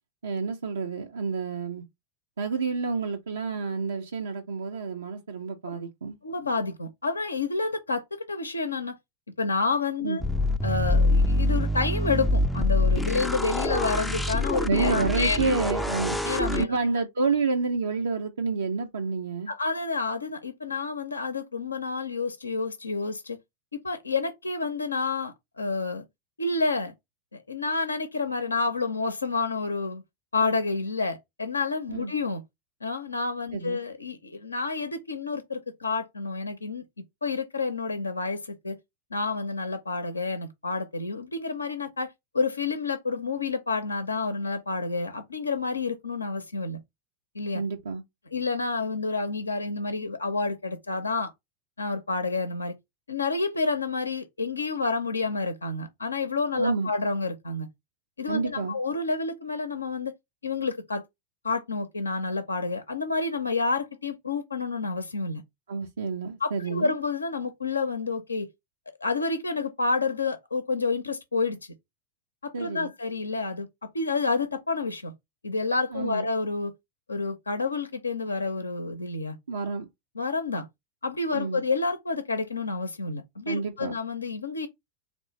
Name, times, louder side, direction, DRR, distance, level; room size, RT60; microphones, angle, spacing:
voice 1, 0.2-1.8 2.4-6.2 10.0-10.2 14.6-16.2 16.6-19.5 31.9-32.1 33.5-33.8 47.5-48.0 56.6-56.9 58.3-58.8 65.7-66.9 72.5-72.9 75.9-76.3 79.5-79.9 81.3-81.6 83.5-84.0, right 4 dB, 70° right, 0.5 m, -29 dB
voice 2, 6.2-8.9 9.4-10.2 10.6-15.5 16.2-16.8 19.5-23.4 23.7-26.0 26.4-26.9 27.3-30.0 30.3-32.4 32.8-36.8 37.2-38.8 39.1-46.8 47.3-47.6 48.3-51.3 51.8-52.7 53.1-57.7 58.2-60.1 60.4-61.0 61.4-65.4 66.4-68.5 69.0-71.7 72.4-73.7 73.9-75.1 75.4-76.7 77.1-79.4 80.2-80.7 81.0-84.7, left 3 dB, 80° left, 0.5 m, -29 dB
sound 1, 10.2-16.6, left 1 dB, 5° left, 0.4 m, -25 dB
3.7 x 3.1 x 3.7 m
figure-of-eight pair, 90°, 0 cm